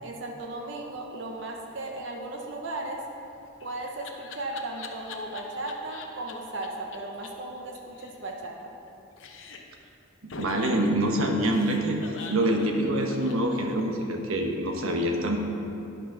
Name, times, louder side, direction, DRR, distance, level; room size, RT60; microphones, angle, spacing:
voice 1, 0.0-3.0 3.6-8.7, right 2 dB, 60° right, 1 dB, 0.9 m, -36 dB
Laughter, 3.2-6.3 6.6-6.7 6.9-7.0 7.2-7.3 7.6-8.9 9.2-9.8 10.3-14.0, left 4 dB, 65° left, 0.8 m, -43 dB
voice 2, 10.4-12.0 12.3-15.4, right 1 dB, 80° right, 2 dB, 1.1 m, -25 dB
10.0 x 6.1 x 5.7 m, 2.7 s
head